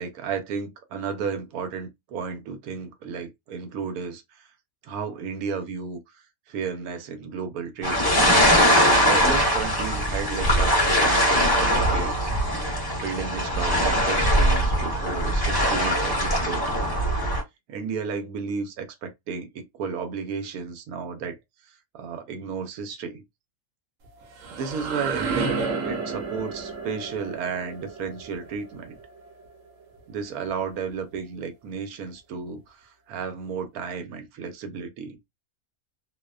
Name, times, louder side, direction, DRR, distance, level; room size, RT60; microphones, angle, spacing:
voice 1, 0.0-4.5 4.8-8.0 9.0-12.3 13.0-16.7 17.7-21.4 21.6-23.2 24.5-25.5 25.8-29.0 30.1-35.2, right 5 dB, 90° right, 1.1 m, -33 dB
sound 1, 7.8-17.4, equal, 20° left, 0.6 m, -21 dB
sound 2, 24.0-29.8, right 4 dB, 65° right, 1.0 m, -32 dB
2.7 x 2.1 x 2.3 m
omnidirectional pair, 1.5 m